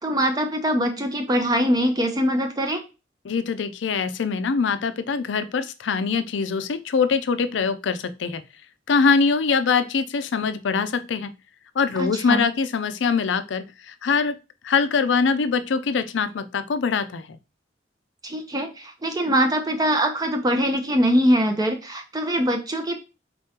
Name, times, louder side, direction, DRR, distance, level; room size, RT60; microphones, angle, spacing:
voice 1, 0.0-2.8 12.0-12.4 18.2-23.0, equal, 20° right, 4 dB, 0.5 m, -23 dB
voice 2, 3.2-8.4 8.9-11.3 11.8-14.4 14.6-17.4, left 5 dB, 80° left, 11 dB, 0.4 m, -23 dB
4.1 x 3.6 x 2.8 m, 0.29 s
head